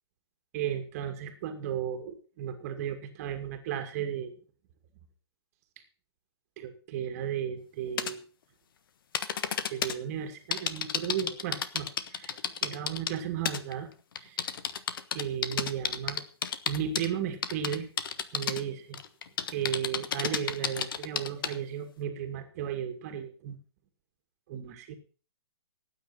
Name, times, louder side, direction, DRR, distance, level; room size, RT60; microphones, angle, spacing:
voice 1, 0.5-4.4 6.6-8.2 9.7-13.9 14.2-14.4 15.1-16.2 16.7-17.9 18.3-19.0 19.5-23.6 24.5-24.9, right 9 dB, 35° right, 7 dB, 2.4 m, -35 dB
sound 1, 8.0-8.1 9.1-9.9 10.5-13.2 13.5-13.7 14.2-17.1 17.4-18.6 18.9-21.5, left 8 dB, 55° left, 1.4 m, -31 dB
17.5 x 9.3 x 5.7 m, 0.38 s
hypercardioid pair, 145°, 14 cm